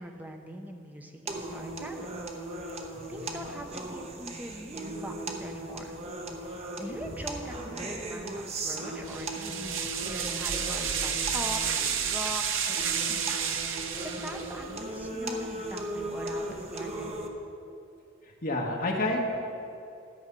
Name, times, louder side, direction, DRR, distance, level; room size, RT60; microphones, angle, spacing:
voice 1, 0.0-2.2 2.5-2.8 3.1-6.0 6.4-11.6 12.1-12.8 13.1-17.3, equal, 10° right, 3 dB, 0.8 m, -42 dB
sound 1, 1.3-17.3, right 1 dB, 35° right, 0.9 m, -38 dB
sound 2, 9.0-14.6, right 7 dB, 75° right, 0.8 m, -31 dB
voice 2, 18.4-19.2, left 2 dB, 45° left, -1 dB, 1.5 m, -29 dB
12.5 x 7.1 x 5.4 m, 2.7 s
head